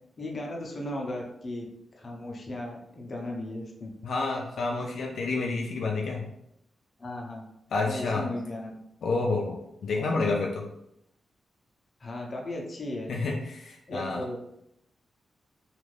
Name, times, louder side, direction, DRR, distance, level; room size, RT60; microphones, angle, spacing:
voice 1, 0.2-1.6 1.9-3.9 7.0-7.4 7.8-8.7 9.9-10.1 12.0-13.1 13.9-14.4, left 1 dB, 40° left, -1 dB, 0.7 m, -36 dB
voice 2, 4.0-6.3 7.7-8.3 9.0-10.7 13.1-14.2, left 3 dB, 80° left, -1 dB, 0.4 m, -29 dB
2.5 x 2.4 x 3.2 m, 0.78 s
wide cardioid pair, 110°, 0 cm